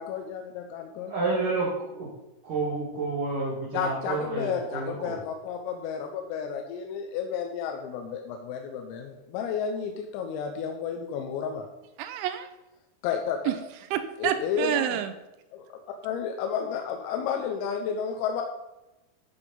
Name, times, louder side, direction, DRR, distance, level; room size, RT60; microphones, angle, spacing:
voice 1, 0.0-1.1 3.7-11.7 13.0-13.4 14.2-15.0 15.5-15.7 16.0-18.4, left 7 dB, 90° left, 4 dB, 3.5 m, -31 dB
voice 2, 1.0-2.1 2.4-5.2, right 3 dB, 50° right, -6 dB, 2.8 m, -30 dB
voice 3, 12.0-12.5 13.5-13.6 13.9-15.1, right 11 dB, 80° right, 10 dB, 2.9 m, -28 dB
14.0 x 5.3 x 5.5 m, 0.97 s
omnidirectional pair, 5.9 m